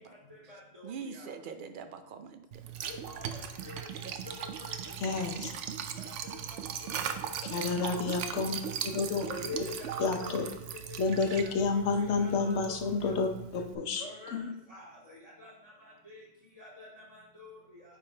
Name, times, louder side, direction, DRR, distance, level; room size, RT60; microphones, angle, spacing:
voice 1, 0.1-1.3 2.8-3.9 4.4-4.8 5.1-5.2 6.0-7.3 7.6-8.5 9.3-11.0 11.4-13.2 14.0-16.2 16.6-17.8, left 3 dB, 30° right, -6 dB, 2.4 m, -47 dB
voice 2, 0.8-2.6 4.0-4.1 5.0-5.1, right 6 dB, 55° right, 9 dB, 0.6 m, -43 dB
Liquid, 2.5-13.7, right 8 dB, 80° right, 0.9 m, -39 dB
voice 3, 5.0-5.5 7.5-8.6 8.9-9.3 10.0-10.5 11.0-14.0 14.3-14.5, left 4 dB, 70° left, 5 dB, 1.0 m, -30 dB
8.9 x 3.5 x 3.3 m, 0.92 s
omnidirectional pair, 1.2 m